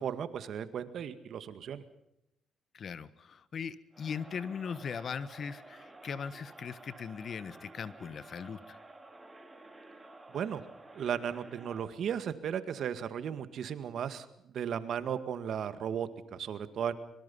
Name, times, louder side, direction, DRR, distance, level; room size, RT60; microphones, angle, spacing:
voice 1, 0.0-1.8 10.3-10.6 10.9-16.9, right 8 dB, 65° right, 11 dB, 2.0 m, -35 dB
voice 2, 2.7-8.8, left 6 dB, 50° left, 15 dB, 1.4 m, -39 dB
Crowd, 3.9-12.0, right 2 dB, 15° right, 3.5 m, -52 dB
25.0 x 23.5 x 5.6 m, 0.81 s
cardioid pair, 90°, 0 cm